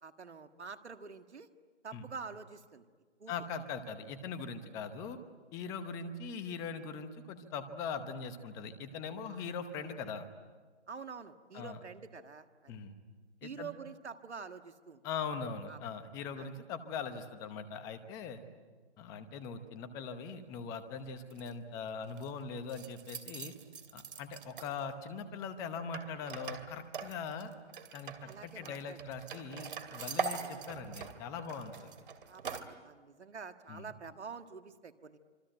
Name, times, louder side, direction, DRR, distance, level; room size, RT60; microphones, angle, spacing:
voice 1, 0.0-1.5 1.8-2.9 3.2-3.3 9.3-9.5 9.9-10.0 10.9-12.7 13.4-15.0 15.7-15.8 16.4-16.5 28.2-29.0 30.1-30.3 32.2-35.2, right 5 dB, 70° right, 8 dB, 1.9 m, -47 dB
voice 2, 3.3-5.2 5.5-10.3 11.5-11.8 12.7-12.9 13.4-13.7 15.0-18.4 19.0-23.5 23.9-27.5 27.9-31.9 33.7-33.9, left 5 dB, 10° left, 10 dB, 0.9 m, -41 dB
sound 1, 21.3-21.5 21.9-22.3 22.7-25.0 25.9-32.6, right 6 dB, 45° right, 2.5 m, -43 dB
26.5 x 24.5 x 9.0 m, 1.5 s
hypercardioid pair, 155°, 35 cm